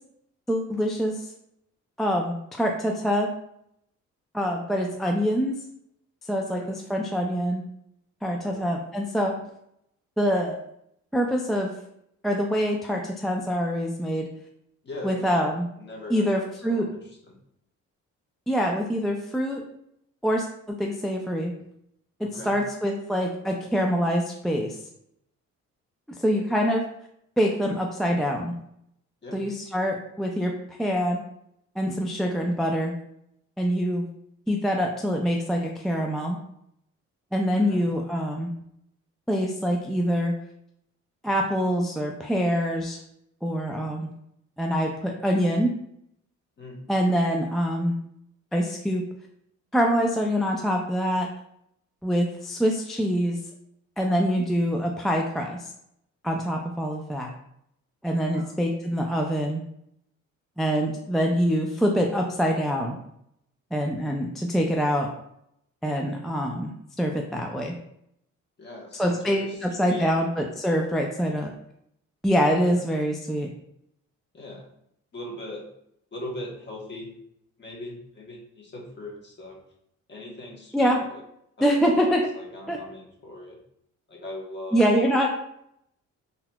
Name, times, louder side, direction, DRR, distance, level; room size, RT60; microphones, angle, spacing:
voice 1, 0.5-1.3 2.0-3.3 4.3-5.6 6.3-7.6 8.2-9.4 10.2-10.6 11.1-11.7 12.2-14.3 15.0-15.7 16.1-16.9 18.5-19.6 20.2-21.5 22.2-24.8 26.2-26.9 27.4-28.6 29.3-30.5 30.8-31.2 31.8-33.0 33.6-34.1 34.5-36.4 37.3-38.5 39.3-40.4 41.2-43.0 43.4-44.1 44.6-45.7 46.9-48.0 48.5-49.0 49.7-51.3 52.0-53.4 54.0-55.7 56.2-57.3 58.0-59.6 60.6-63.0 63.7-65.1 65.8-67.8 69.0-71.5 72.2-73.5 80.7-81.0 81.6-82.3 82.7-82.8 84.7-85.3, equal, ahead, 0 dB, 0.3 m, -25 dB
voice 2, 14.8-15.5 15.8-17.4 22.2-22.6 29.2-29.4 37.6-37.8 46.6-46.9 58.3-58.5 68.6-70.2 72.6-72.8 74.3-74.7 75.1-75.7 76.1-77.1 77.6-79.6 80.1-81.2 81.6-83.6 84.1-85.3, left 1 dB, 35° left, -2 dB, 1.1 m, -40 dB
3.8 x 2.8 x 2.2 m, 0.74 s
cardioid pair, 90°, 30 cm